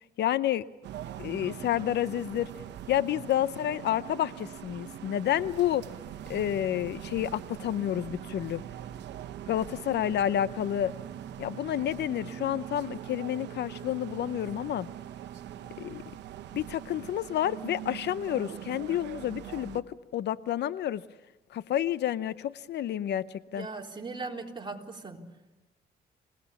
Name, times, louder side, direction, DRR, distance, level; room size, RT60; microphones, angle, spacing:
voice 1, 0.2-0.6 1.2-2.5 2.9-5.8 6.3-8.6 9.5-10.9 11.4-14.9 15.8-16.0 16.5-19.9 20.1-21.0 21.5-23.2 23.5-23.7, left 11 dB, 75° left, 16 dB, 0.7 m, -29 dB
sound 1, 0.8-19.8, right 11 dB, 90° right, 1.0 m, -42 dB
voice 2, 23.5-25.2, right 3 dB, 25° right, 0 dB, 4.0 m, -39 dB
27.5 x 18.0 x 7.2 m, 1.1 s
cardioid pair, 80°, 18 cm